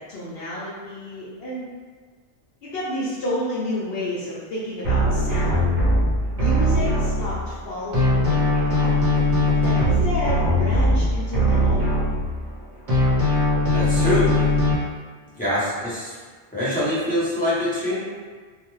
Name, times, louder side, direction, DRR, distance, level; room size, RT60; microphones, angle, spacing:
voice 1, 0.1-1.7 2.6-5.7 6.4-8.9 9.6-11.8, left 1 dB, 65° left, -9 dB, 0.8 m, -30 dB
sound 1, 4.8-7.6 7.9-12.6 12.9-14.7, left 1 dB, 45° right, 0.9 m, -20 dB
voice 2, 13.7-14.3 15.3-16.1 16.5-18.0, left 1 dB, 10° left, -12 dB, 0.8 m, -24 dB
2.4 x 2.3 x 3.0 m, 1.5 s
omnidirectional pair, 1.1 m